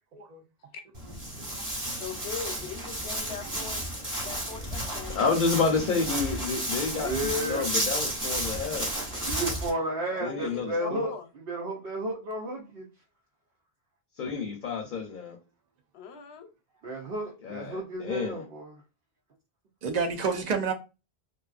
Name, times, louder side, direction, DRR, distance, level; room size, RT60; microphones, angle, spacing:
voice 1, 0.1-0.4 1.4-1.5 1.8-2.0 19.8-20.7, right 5 dB, 50° right, 0.6 m, -29 dB
Walk footsteps, 0.9-9.7, right 1 dB, 30° right, 1.0 m, -32 dB
voice 2, 2.0-3.8 4.2-5.2 10.1-11.3 15.9-16.5, left 6 dB, 90° left, 0.9 m, -41 dB
voice 3, 5.1-8.9 10.2-11.0 14.2-15.4 17.4-18.5, left 4 dB, 60° left, 0.6 m, -29 dB
voice 4, 6.9-7.7 9.2-11.1 11.5-12.9 16.8-18.8, right 1 dB, 75° right, 0.9 m, -32 dB
2.5 x 2.3 x 2.3 m
omnidirectional pair, 1.0 m